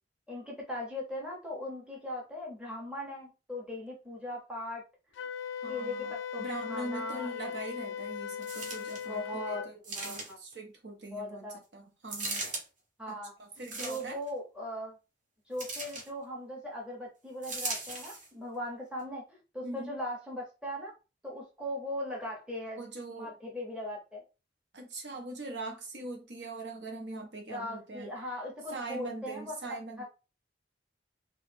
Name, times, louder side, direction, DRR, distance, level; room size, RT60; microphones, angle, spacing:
voice 1, 0.3-4.8 5.1-5.3 5.7-7.3 9.1-9.6 9.9-10.4 11.1-11.6 13.0-13.3 13.8-15.0 15.5-20.9 21.2-22.8 23.1-24.2 27.5-29.6 30.0-30.1, left 1 dB, 5° right, 0.7 m, -39 dB
Wind instrument woodwind instrument, 5.1-9.7, left 8 dB, 85° left, 0.3 m, -39 dB
voice 2, 5.6-12.4 13.1-14.2 19.6-20.0 22.7-23.3 24.7-28.1 28.7-30.0, right 2 dB, 80° right, 1.0 m, -42 dB
sound 1, 8.4-9.1 9.8-10.5 12.1-12.6 13.6-14.3 15.6-16.1 17.4-18.3 19.0-19.1, right 2 dB, 45° right, 1.0 m, -38 dB
3.0 x 2.3 x 3.3 m
head